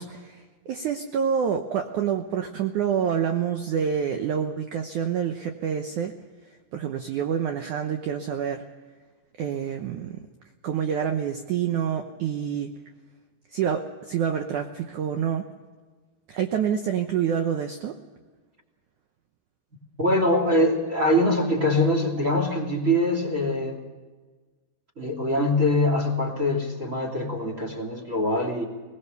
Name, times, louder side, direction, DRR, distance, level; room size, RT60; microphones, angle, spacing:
voice 1, 0.0-6.2 6.7-8.6 9.4-10.2 10.6-12.7 13.5-15.5 16.3-18.0, right 8 dB, 85° right, 5 dB, 1.7 m, -27 dB
voice 2, 20.0-23.8 25.0-28.6, left 1 dB, 20° right, 3 dB, 2.7 m, -23 dB
21.5 x 20.0 x 6.8 m, 1.3 s
omnidirectional pair, 4.9 m